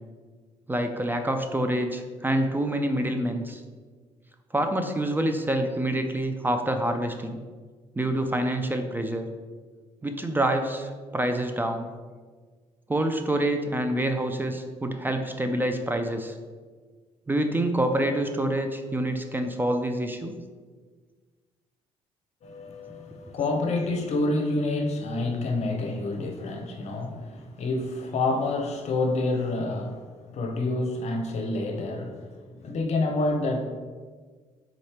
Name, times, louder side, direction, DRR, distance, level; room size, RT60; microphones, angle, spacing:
voice 1, 0.7-3.6 4.5-7.4 8.0-9.3 10.0-11.9 12.9-16.3 17.3-20.3, right 1 dB, 15° right, 6 dB, 0.4 m, -27 dB
voice 2, 22.4-33.7, left 2 dB, 60° left, 4 dB, 0.7 m, -28 dB
3.8 x 3.1 x 4.3 m, 1.5 s
supercardioid pair, 70°, 13 cm